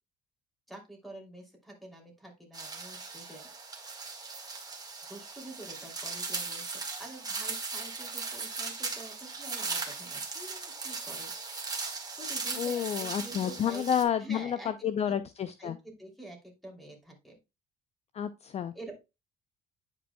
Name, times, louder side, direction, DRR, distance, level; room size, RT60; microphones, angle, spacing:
voice 1, 0.7-3.5 5.1-11.3 12.2-13.9 14.2-15.1 15.6-16.4 16.6-17.4 18.7-19.0, right 1 dB, ahead, 1 dB, 2.8 m, -47 dB
sound 1, 2.5-14.0, right 4 dB, 20° right, 1.6 m, -38 dB
voice 2, 12.6-14.6 14.8-15.8 18.1-18.7, left 9 dB, 40° left, 12 dB, 0.5 m, -30 dB
9.6 x 5.1 x 2.2 m, 0.25 s
cardioid pair, 110°, 17 cm